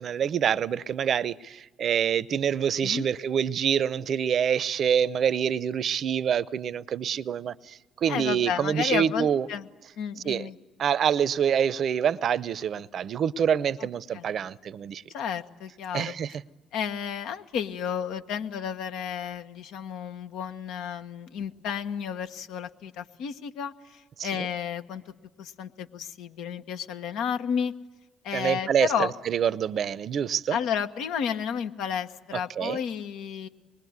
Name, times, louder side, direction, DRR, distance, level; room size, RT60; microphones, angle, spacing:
voice 1, 0.0-9.5 10.2-10.5 10.8-15.0 15.9-16.3 24.2-24.5 28.3-30.6 32.6-32.8, right 8 dB, 60° right, 0.7 m, -26 dB
voice 2, 8.1-9.7 10.0-10.6 13.8-13.9 14.1-14.3 15.1-16.1 16.7-25.0 25.4-27.7 28.2-29.1 30.5-33.5, left 8 dB, 75° left, 1.4 m, -32 dB
25.0 x 22.0 x 9.6 m
hypercardioid pair, 55°, 0 cm